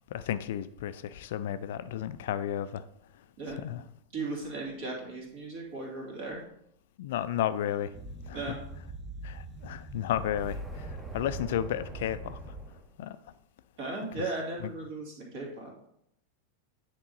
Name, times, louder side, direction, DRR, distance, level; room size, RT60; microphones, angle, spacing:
voice 1, 0.1-2.8 3.5-3.8 7.0-7.9 8.3-8.4 9.2-12.5 13.0-13.2 14.2-14.3 14.6-14.7, left 11 dB, 55° left, 13 dB, 0.3 m, -33 dB
voice 2, 4.1-6.4 8.3-8.6 13.8-15.7, right 3 dB, 50° right, -1 dB, 2.3 m, -36 dB
sound 1, 7.9-12.9, right 2 dB, 10° right, 0.8 m, -42 dB
9.4 x 3.7 x 4.1 m, 0.73 s
figure-of-eight pair, 90°, 0 cm